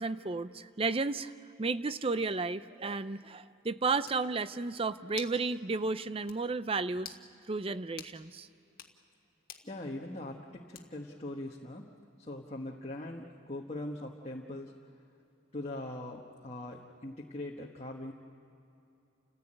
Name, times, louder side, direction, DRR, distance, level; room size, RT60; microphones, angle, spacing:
voice 1, 0.0-1.3 1.6-7.2 7.5-8.5, right 3 dB, 30° right, 14 dB, 0.5 m, -33 dB
sound 1, 3.6-3.7 4.1-4.3 5.2-5.4 5.8-5.9 6.3-6.4 7.0-7.3 8.0-8.2 8.7-9.0 9.5-9.7 10.7-11.1, left 9 dB, 50° left, 1.5 m, -47 dB
voice 2, 9.6-11.9 12.2-14.7 15.5-18.1, left 1 dB, 30° left, -1 dB, 1.3 m, -41 dB
30.0 x 15.0 x 8.8 m, 2.7 s
head